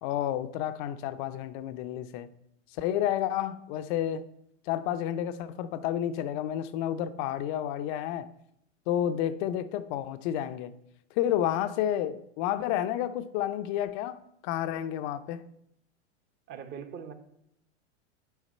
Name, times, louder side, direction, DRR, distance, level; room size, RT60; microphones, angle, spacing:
voice 1, 0.0-2.3 2.8-4.3 4.7-8.3 8.9-10.7 11.2-15.4, left 11 dB, 40° left, 0.5 m, -30 dB
voice 2, 16.5-17.1, right 7 dB, 30° right, 0.9 m, -41 dB
8.2 x 4.9 x 4.2 m
hypercardioid pair, 110°, 37 cm